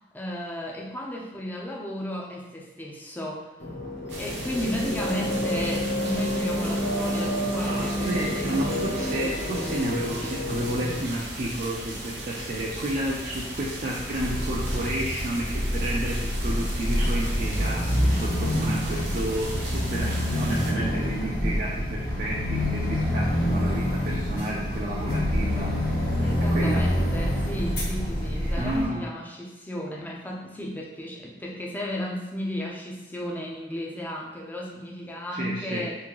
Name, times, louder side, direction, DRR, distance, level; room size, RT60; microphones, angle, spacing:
voice 1, 0.1-3.5 4.2-8.9 26.2-36.0, equal, 10° left, -2 dB, 0.5 m, -34 dB
sound 1, 3.6-11.0, equal, 70° left, 0.7 m, -29 dB
sound 2, 4.1-20.7, right 1 dB, 80° right, 0.8 m, -37 dB
voice 2, 7.7-25.8 26.5-26.9 28.6-29.1 35.3-35.9, right 1 dB, 45° right, -3 dB, 0.4 m, -31 dB
sound 3, 14.2-28.8, equal, 55° left, 1.3 m, -26 dB
3.7 x 2.6 x 3.0 m, 1.0 s
head